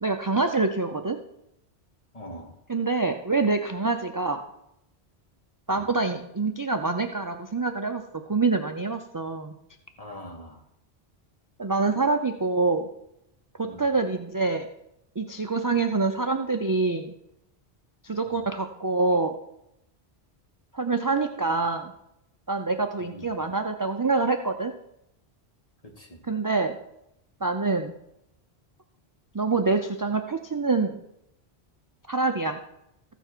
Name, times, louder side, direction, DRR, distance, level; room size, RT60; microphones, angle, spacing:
voice 1, 0.0-1.2 2.7-4.4 5.7-8.0 8.3-9.5 11.6-12.9 13.6-14.7 15.2-17.1 18.0-19.4 20.7-21.9 22.5-24.7 26.3-26.8 27.4-27.9 29.3-31.0 32.1-32.6, right 3 dB, 30° right, 5 dB, 0.4 m, -26 dB
voice 2, 2.1-2.5 5.7-5.9 10.0-10.6 13.6-13.8 18.3-18.4 23.0-23.3 25.8-26.2, equal, 35° left, 2 dB, 1.5 m, -43 dB
14.5 x 7.1 x 4.5 m, 0.82 s
omnidirectional pair, 1.1 m